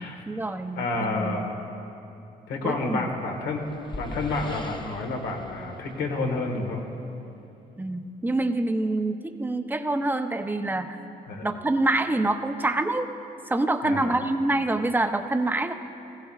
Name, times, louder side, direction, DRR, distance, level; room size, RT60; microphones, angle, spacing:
voice 1, 0.0-1.5 2.6-3.1 7.8-11.0 11.4-13.2 13.5-15.7, right 2 dB, 10° right, 7 dB, 0.6 m, -26 dB
voice 2, 0.8-1.5 2.5-3.6 4.0-6.8 11.3-11.5 13.8-14.2, left 3 dB, 85° left, 2 dB, 1.4 m, -29 dB
sound 1, 3.1-6.8, left 2 dB, 25° left, 0.9 m, -41 dB
15.5 x 15.5 x 2.4 m, 2.8 s
cardioid pair, 90°, 17 cm